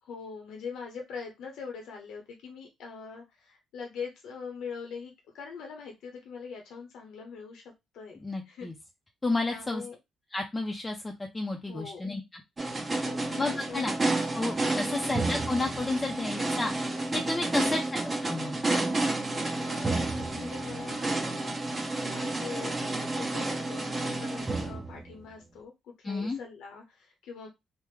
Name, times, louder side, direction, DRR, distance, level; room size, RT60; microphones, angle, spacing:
voice 1, 0.0-8.2 8.4-8.7 9.5-10.0 11.7-12.1 13.1-13.4 13.7-13.9 14.8-15.0 17.5-17.8 19.6-21.1 22.1-27.5, left 5 dB, 80° left, 2 dB, 0.7 m, -42 dB
voice 2, 8.2-8.7 9.2-9.8 10.3-12.2 13.4-13.9 14.3-16.7 17.1-17.8 18.2-18.6 26.0-26.4, left 2 dB, 20° left, 2 dB, 0.5 m, -31 dB
sound 1, 12.6-25.3, right 2 dB, 25° right, 0.9 m, -30 dB
3.4 x 2.0 x 3.2 m, 0.21 s
cardioid pair, 90°, 0 cm